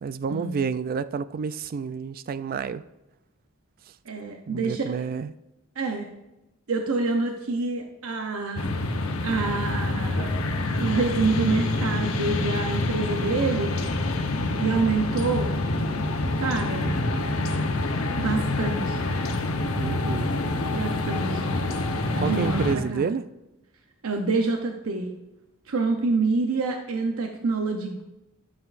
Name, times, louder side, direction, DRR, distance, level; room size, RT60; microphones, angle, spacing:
voice 1, 0.0-2.8 4.5-5.3 19.7-20.3 22.2-23.3, right 6 dB, 45° right, 0.3 m, -29 dB
voice 2, 4.1-5.1 5.8-6.1 6.7-8.7 9.2-10.3 10.8-13.8 14.6-15.5 16.4-16.9 18.2-19.1 20.7-21.5 22.2-23.1 24.0-25.1 25.7-28.0, right 3 dB, 85° right, 0.7 m, -27 dB
sound 1, 8.6-22.7, left 2 dB, 80° left, 0.9 m, -27 dB
12.5 x 7.6 x 2.5 m
head